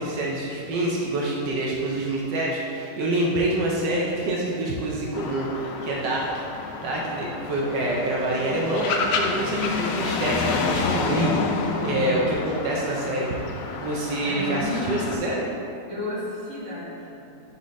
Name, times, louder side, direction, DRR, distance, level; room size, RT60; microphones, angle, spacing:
voice 1, 0.0-6.5 6.8-11.3 11.8-12.2 12.4-13.4 13.8-15.5, right 1 dB, 80° right, -3 dB, 1.4 m, -26 dB
sound 1, 5.1-15.2, left 4 dB, 70° left, 0.8 m, -29 dB
voice 2, 11.4-12.2 14.2-15.1 15.9-17.5, left 1 dB, 45° right, -6 dB, 1.6 m, -33 dB
4.8 x 4.2 x 5.1 m, 2.6 s
omnidirectional pair, 1.9 m